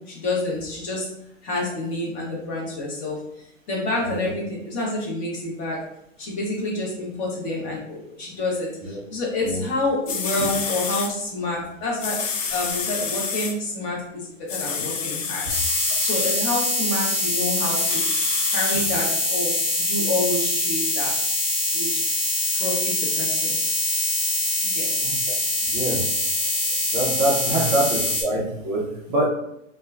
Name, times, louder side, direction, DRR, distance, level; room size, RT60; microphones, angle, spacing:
voice 1, 0.1-1.1 1.4-3.2 3.7-5.8 6.2-12.2 12.5-15.5 16.0-18.0 18.5-19.5 19.8-21.1 21.7-21.9 22.5-23.6 24.6-24.9 27.5-27.6, left 2 dB, 20° left, -2 dB, 0.7 m, -28 dB
sound 1, 9.8-9.9 10.1-11.1 12.0-13.5 14.5-16.4 17.7-18.9 19.5-19.6, left 5 dB, 75° left, 0.6 m, -28 dB
sound 2, 15.5-28.2, left 2 dB, 40° left, 1.2 m, -24 dB
voice 2, 25.0-25.3 25.7-26.0 26.9-29.3, right 1 dB, 15° right, -4 dB, 0.4 m, -25 dB
2.9 x 2.1 x 2.3 m, 0.76 s
hypercardioid pair, 130°, 38 cm